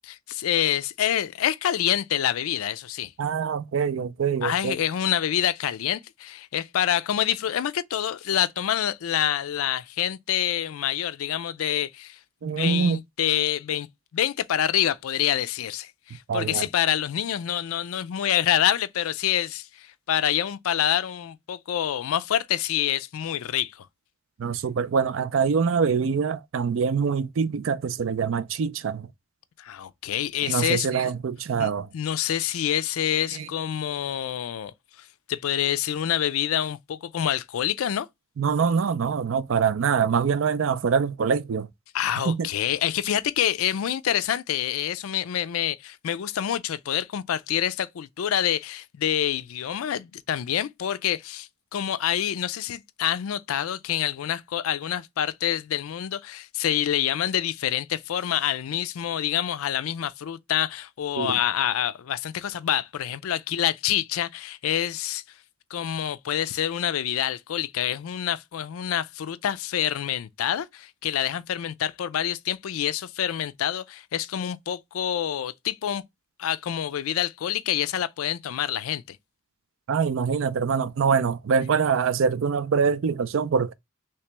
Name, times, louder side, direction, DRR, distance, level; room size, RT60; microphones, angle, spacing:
voice 1, 0.1-3.1 4.4-12.2 12.4-13.9 14.1-23.9 29.6-31.1 31.6-34.7 35.3-38.1 41.9-65.2 65.7-76.0 76.4-79.2, left 10 dB, 80° left, 0.4 m, -27 dB
voice 2, 3.2-4.8 12.4-13.0 16.3-16.7 24.4-29.1 30.4-31.9 33.3-33.5 38.4-41.7 42.2-42.5 61.2-61.4 79.9-83.7, right 6 dB, 65° right, 0.4 m, -24 dB
3.2 x 2.9 x 3.3 m
head